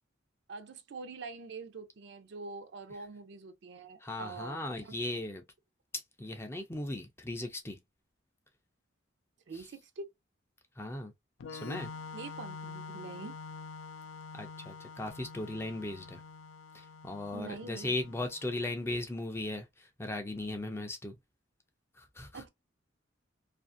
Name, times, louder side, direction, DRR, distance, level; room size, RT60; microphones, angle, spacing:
voice 1, 0.5-4.9 9.5-10.1 12.1-13.3 17.3-18.0 22.3-22.5, right 4 dB, 60° right, 0.5 m, -45 dB
voice 2, 4.0-5.4 6.2-7.8 10.8-11.1 11.5-11.9 14.3-16.2 16.7-21.1 22.0-22.4, left 2 dB, 10° left, 0.4 m, -37 dB
Organ, 11.4-18.9, left 4 dB, 75° left, 0.4 m, -46 dB
2.5 x 2.4 x 2.4 m
head